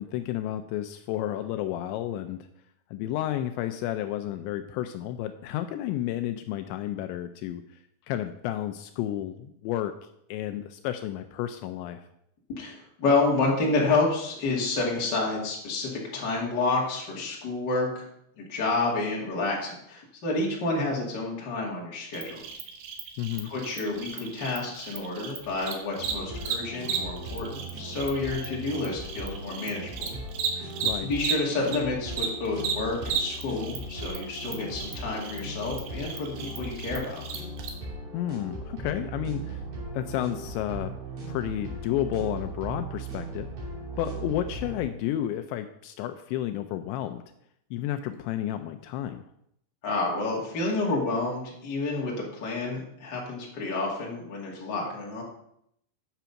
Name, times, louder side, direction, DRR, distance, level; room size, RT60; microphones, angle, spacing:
voice 1, 0.0-2.4 2.9-7.6 8.1-9.9 10.3-12.0 23.2-23.5 30.8-31.1 38.1-39.6 39.9-40.9 41.2-43.5 44.0-47.2 47.7-49.2, left 12 dB, 85° left, 8 dB, 2.7 m, -31 dB
voice 2, 12.5-18.0 18.4-22.4 23.4-30.2 30.5-30.7 31.0-37.2 49.8-55.2, left 3 dB, 30° left, -3 dB, 2.1 m, -29 dB
Cricket, 22.1-31.8 32.1-37.7, right 7 dB, 70° right, 3.1 m, -34 dB
sound 1, 26.0-44.9, right 2 dB, 45° right, 4.0 m, -38 dB
9.1 x 6.0 x 5.7 m, 0.74 s
omnidirectional pair, 5.3 m